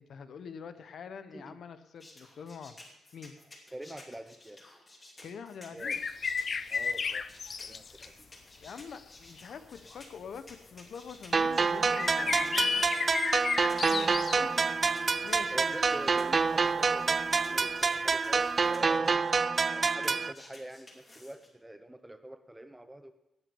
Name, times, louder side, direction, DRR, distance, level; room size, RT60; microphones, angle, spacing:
voice 1, 0.0-2.8 3.1-3.4 5.2-6.0 8.6-16.1 18.9-19.1, left 6 dB, 60° left, 11 dB, 0.8 m, -46 dB
sound 1, 2.0-21.5, left 2 dB, 25° left, 2.7 m, -54 dB
voice 2, 3.7-4.6 5.7-6.0 6.7-7.3 7.7-8.3 15.5-19.4 19.7-23.1, right 1 dB, 5° right, 9 dB, 0.9 m, -45 dB
sound 2, 5.8-8.1 9.0-9.1 9.9-10.0 11.9-14.4 15.9-16.0 18.6-18.7, left 5 dB, 40° left, 0.5 m, -33 dB
sound 3, 11.3-20.3, right 4 dB, 30° right, 0.3 m, -27 dB
18.0 x 6.1 x 7.0 m, 0.91 s
wide cardioid pair, 150°, 0 cm